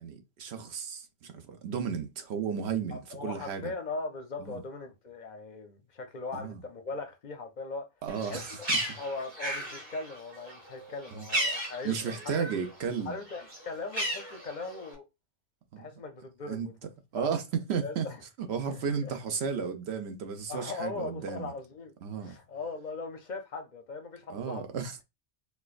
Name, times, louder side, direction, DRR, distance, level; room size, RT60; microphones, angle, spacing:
voice 1, 0.0-3.7 4.4-4.6 6.3-6.6 8.0-9.0 11.1-11.3 11.8-13.2 15.7-15.8 16.5-16.7 17.1-18.1 18.4-21.5 22.0-22.4 24.3-25.0, right 6 dB, 75° right, 0.9 m, -34 dB
voice 2, 2.9-7.9 8.2-12.1 13.1-15.1 15.8-16.7 17.1-17.3 17.8-18.2 18.7-19.2 20.5-24.7, left 3 dB, 55° left, 0.6 m, -39 dB
Bird, 8.1-12.7 13.0-14.9, right 1 dB, 25° right, 1.1 m, -34 dB
4.4 x 2.2 x 2.4 m
omnidirectional pair, 1.1 m